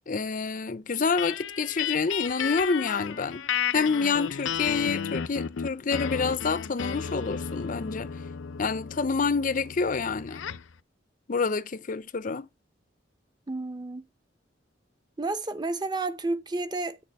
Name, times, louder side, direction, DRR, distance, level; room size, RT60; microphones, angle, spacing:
voice 1, 0.1-3.5 3.7-8.2 8.6-10.4 11.3-12.5, left 4 dB, 45° left, 0.5 m, -28 dB
sound 1, 1.2-10.7, left 7 dB, 85° left, 0.6 m, -33 dB
voice 2, 13.5-14.0 15.2-17.0, right 3 dB, 20° right, 0.8 m, -31 dB
9.1 x 6.7 x 6.4 m
head